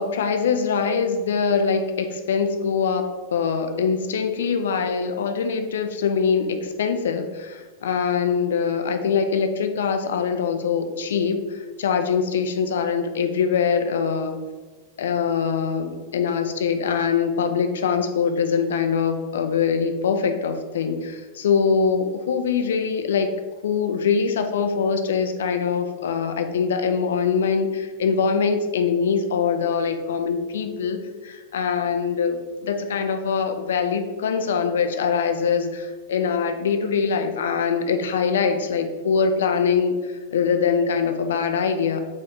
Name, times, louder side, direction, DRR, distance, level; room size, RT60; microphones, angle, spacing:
voice 1, 0.0-14.4 15.0-23.3 23.6-42.0, left 6 dB, 60° left, 6 dB, 0.4 m, -23 dB
4.4 x 2.7 x 3.8 m, 1.3 s
figure-of-eight pair, 90°, 0 cm